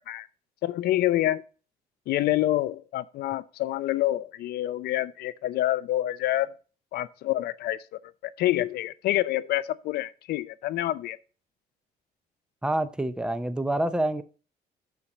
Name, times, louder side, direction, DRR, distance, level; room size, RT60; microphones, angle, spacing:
voice 1, 0.6-1.4 2.1-6.5 6.9-7.8 8.2-11.2, left 14 dB, 70° left, 0.6 m, -27 dB
voice 2, 12.6-14.2, right 1 dB, 5° right, 0.6 m, -27 dB
6.4 x 5.8 x 5.3 m
cardioid pair, 110°, 17 cm